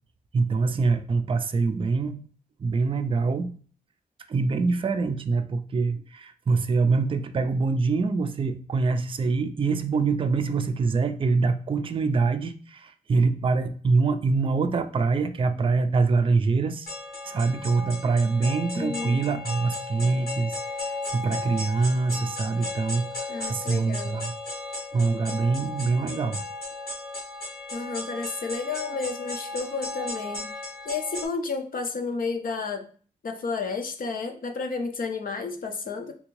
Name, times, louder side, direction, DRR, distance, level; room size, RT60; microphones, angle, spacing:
voice 1, 0.3-2.2 2.6-3.6 4.3-16.9 17.2-24.3 24.9-26.4, right 4 dB, 35° right, 8 dB, 0.3 m, -25 dB
sound 1, 16.9-31.3, left 2 dB, 90° left, 1.2 m, -35 dB
voice 2, 18.7-19.3 23.3-24.2 27.7-30.5 30.8-32.9 33.2-36.1, left 4 dB, 65° left, 5 dB, 0.5 m, -31 dB
3.5 x 2.5 x 3.0 m, 0.42 s
wide cardioid pair, 90°, 15 cm